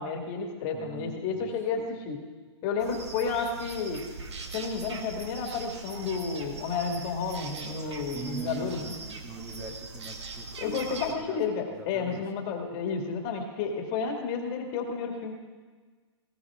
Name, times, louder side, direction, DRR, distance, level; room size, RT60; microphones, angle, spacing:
voice 1, 0.0-2.2 2.6-4.0 4.5-8.9 10.6-15.3, left 5 dB, 30° left, 2 dB, 2.4 m, -31 dB
voice 2, 0.7-1.9 8.1-11.4 11.7-12.3, right 3 dB, 15° right, 0 dB, 2.1 m, -42 dB
sound 1, 2.8-11.1, right 4 dB, 70° right, 2.0 m, -41 dB
19.0 x 17.5 x 3.7 m, 1.5 s
hypercardioid pair, 140°, 15 cm